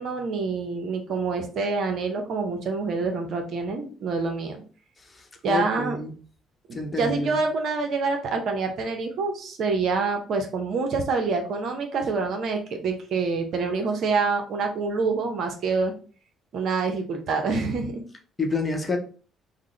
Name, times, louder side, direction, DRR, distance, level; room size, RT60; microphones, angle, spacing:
voice 1, 0.0-4.6 5.4-6.0 6.7-15.9 16.5-18.0, right 4 dB, 55° right, 4 dB, 0.6 m, -26 dB
voice 2, 5.1-6.1 6.7-7.4 18.4-19.0, left 3 dB, 25° left, 2 dB, 0.8 m, -28 dB
3.6 x 2.0 x 3.1 m, 0.39 s
figure-of-eight pair, 50°, 0 cm